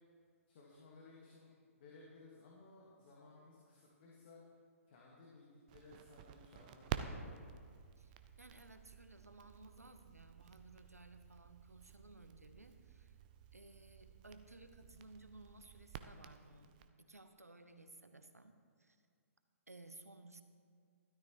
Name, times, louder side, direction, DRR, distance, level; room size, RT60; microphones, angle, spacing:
voice 1, 0.5-4.4 4.9-7.8 14.9-15.0, left 3 dB, 45° left, -4 dB, 1.7 m, -60 dB
Crackle, 5.7-16.9, right 9 dB, 35° right, 0.5 m, -50 dB
voice 2, 8.0-13.2 13.5-19.0 19.7-20.4, right 2 dB, 90° right, 9 dB, 0.8 m, -58 dB
12.5 x 12.5 x 3.1 m, 2.2 s
figure-of-eight pair, 125°, 8 cm